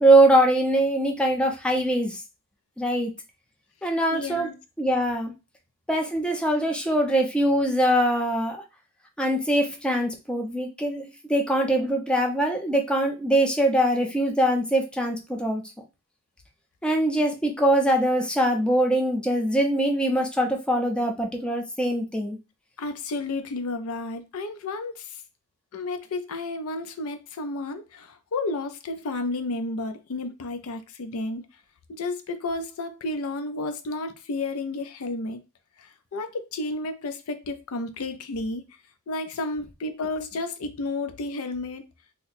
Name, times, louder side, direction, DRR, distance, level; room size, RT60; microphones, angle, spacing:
voice 1, 0.0-2.2 2.8-3.1 3.8-4.5 4.8-5.3 5.9-8.6 9.2-15.6 16.8-22.4, right 1 dB, 5° left, 0.5 m, -22 dB
voice 2, 4.1-4.5 22.8-25.2 25.7-31.4 31.9-35.4 35.8-38.6 39.1-41.8, left 2 dB, 70° left, 0.5 m, -32 dB
2.8 x 2.1 x 4.0 m
head